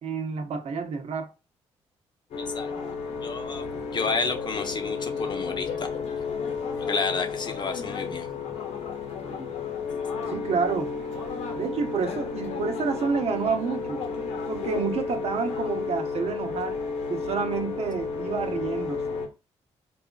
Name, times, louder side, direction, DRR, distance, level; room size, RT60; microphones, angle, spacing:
voice 1, 0.0-1.3 10.3-10.9 11.6-14.0 14.5-16.8 17.1-19.0, right 5 dB, 65° right, 0.7 m, -29 dB
sound 1, 2.3-19.3, left 5 dB, 80° left, 1.0 m, -32 dB
voice 2, 3.2-5.9 6.8-8.3, left 4 dB, 40° left, 0.8 m, -30 dB
4.1 x 2.4 x 2.3 m
cardioid pair, 80°, 12 cm